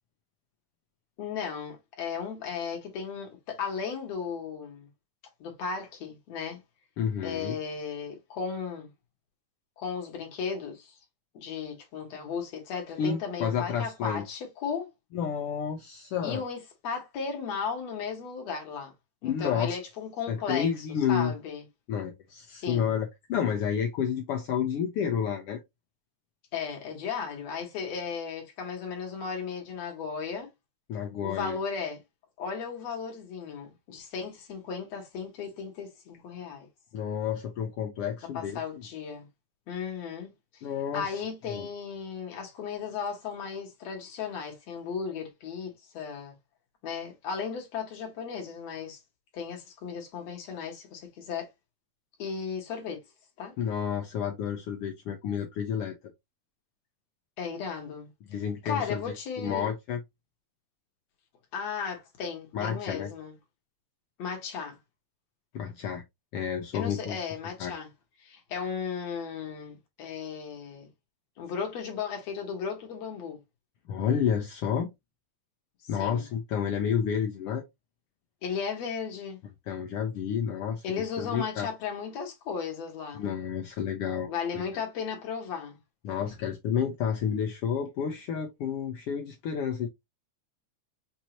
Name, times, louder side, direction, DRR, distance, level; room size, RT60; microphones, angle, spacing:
voice 1, 1.2-4.9 5.4-6.6 7.2-8.9 9.8-11.0 11.3-14.9 16.2-18.9 19.2-21.6 22.5-22.9 26.5-30.5 31.2-32.0 32.4-36.7 38.3-39.3 39.7-40.6 40.9-46.3 46.8-49.0 49.3-51.5 52.2-53.0 53.4-53.6 57.4-58.1 58.7-59.7 61.5-63.3 64.2-64.8 66.7-67.9 68.2-70.9 71.4-73.4 76.0-76.3 78.4-79.4 80.8-83.2 84.3-85.8, left 6 dB, 60° left, 2.5 m, -35 dB
voice 2, 7.0-7.6 13.0-14.2 15.1-16.4 19.2-19.8 20.3-21.3 21.9-25.6 30.9-31.6 36.9-38.6 40.6-41.1 41.5-41.7 53.6-56.0 58.3-60.0 62.5-63.1 65.5-66.0 66.3-67.2 67.6-67.7 73.9-74.9 75.9-77.6 79.7-81.7 83.1-84.3 84.5-84.6 86.0-89.9, left 7 dB, 90° left, 1.3 m, -30 dB
6.0 x 2.7 x 2.9 m
omnidirectional pair, 3.5 m